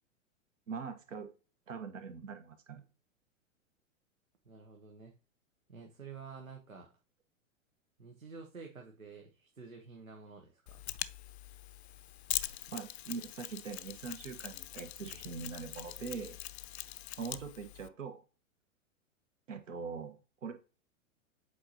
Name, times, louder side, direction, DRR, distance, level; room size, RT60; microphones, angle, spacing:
voice 1, 0.7-1.3 1.7-2.8 12.7-16.4 17.2-18.2 19.5-20.5, right 5 dB, 70° right, 8 dB, 1.3 m, -42 dB
voice 2, 4.4-5.1 5.7-6.9 8.0-10.9, right 5 dB, 85° right, 2 dB, 1.1 m, -50 dB
Mechanisms, 10.7-17.9, left 14 dB, 55° left, 0.5 m, -42 dB
7.8 x 4.7 x 2.9 m, 0.34 s
figure-of-eight pair, 100°, 40 cm